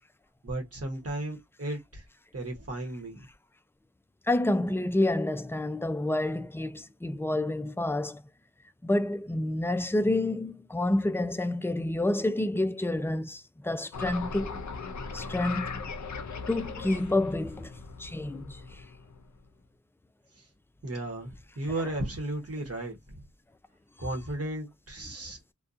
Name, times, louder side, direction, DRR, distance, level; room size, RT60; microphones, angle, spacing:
voice 1, 0.4-2.0 2.3-3.3 20.4-20.5 20.8-23.0 24.0-25.5, right 1 dB, 55° right, 1.0 m, -35 dB
voice 2, 4.3-8.2 8.8-14.6 15.1-15.8 16.5-17.7 18.0-18.8, left 1 dB, 10° left, 0.3 m, -29 dB
sound 1, 13.9-19.3, left 4 dB, 70° left, 0.5 m, -39 dB
2.6 x 2.2 x 2.4 m
wide cardioid pair, 45°, 30 cm